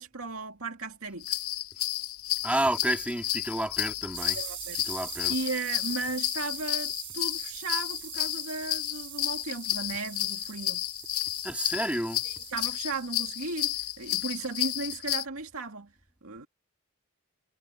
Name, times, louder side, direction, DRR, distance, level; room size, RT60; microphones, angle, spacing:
voice 1, 0.0-1.4 4.4-4.8 5.3-10.9 12.2-15.9 16.2-16.5, right 3 dB, 80° right, 2.2 m, -36 dB
sound 1, 1.2-15.2, left 14 dB, 85° left, 0.7 m, -32 dB
voice 2, 2.4-4.4 4.9-5.3 11.4-12.2, right 1 dB, 5° right, 2.4 m, -30 dB
sound 2, 4.1-14.8, right 16 dB, 55° right, 5.7 m, -44 dB
head